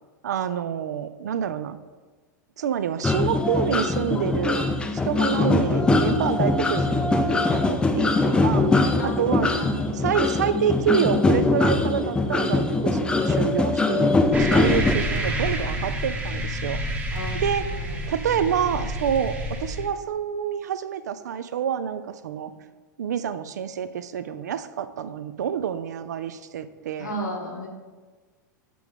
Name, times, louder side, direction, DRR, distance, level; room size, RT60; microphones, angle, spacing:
voice 1, 0.2-1.8 2.6-9.5 9.9-16.8 17.3-17.7 18.1-22.5 23.0-27.2, right 8 dB, 65° right, 12 dB, 0.4 m, -27 dB
sound 1, 3.0-14.9, left 3 dB, 10° left, 0.5 m, -22 dB
voice 2, 9.0-10.3 17.1-18.0 27.0-27.7, equal, 70° left, 1 dB, 1.4 m, -36 dB
sound 2, 14.3-19.9, equal, 15° right, 0.9 m, -29 dB
7.6 x 3.4 x 5.1 m, 1.4 s
figure-of-eight pair, 90°, 10 cm